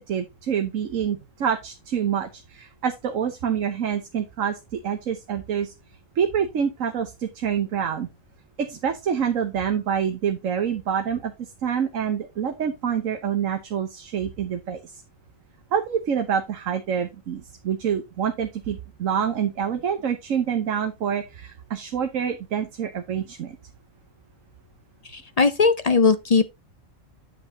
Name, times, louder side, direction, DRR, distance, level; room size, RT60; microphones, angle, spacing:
voice 1, 0.0-5.7 6.1-8.1 8.6-14.9 15.7-23.6, right 8 dB, 85° right, 1.4 m, -27 dB
voice 2, 25.1-26.5, left 4 dB, 45° left, 0.5 m, -19 dB
9.1 x 7.8 x 2.8 m
omnidirectional pair, 1.3 m